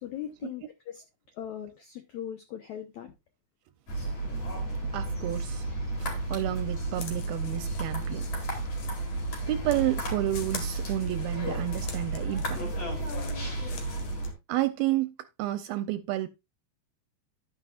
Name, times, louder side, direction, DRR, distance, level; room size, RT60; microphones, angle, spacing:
voice 1, 0.0-1.0 1.3-3.1, left 10 dB, 75° left, 1.7 m, -39 dB
sound 1, 3.9-14.3, right 2 dB, 40° left, 3.5 m, -32 dB
voice 2, 4.9-5.6 6.0-8.3 9.5-12.7 14.5-16.3, right 15 dB, 80° right, 2.3 m, -30 dB
sound 2, 6.9-14.3, left 6 dB, 60° left, 2.8 m, -47 dB
11.5 x 9.7 x 2.4 m
omnidirectional pair, 4.7 m